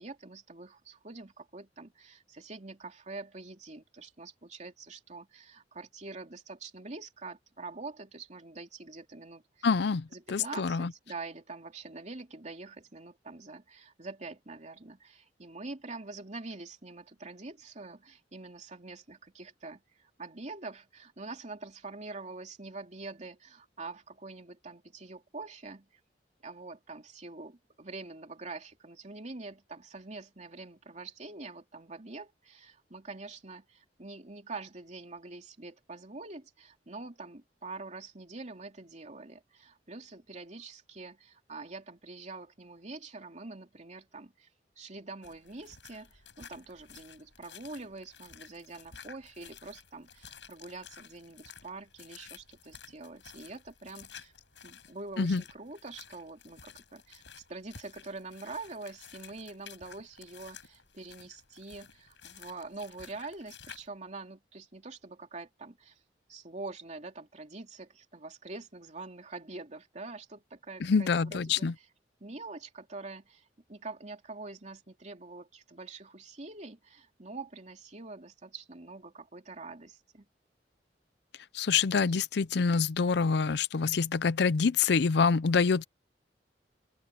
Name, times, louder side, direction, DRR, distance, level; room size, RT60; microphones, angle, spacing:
voice 1, 0.0-9.7 10.1-26.0 26.4-44.5 44.8-54.3 54.6-57.2 57.5-66.0 66.3-71.9 72.2-80.3, right 3 dB, 40° right, 3.0 m, -45 dB
voice 2, 9.6-10.9 55.2-55.4 70.8-71.7 81.5-85.8, left 5 dB, 70° left, 0.5 m, -26 dB
sound 1, 45.2-63.9, left 7 dB, 85° left, 7.4 m, -53 dB
open air
head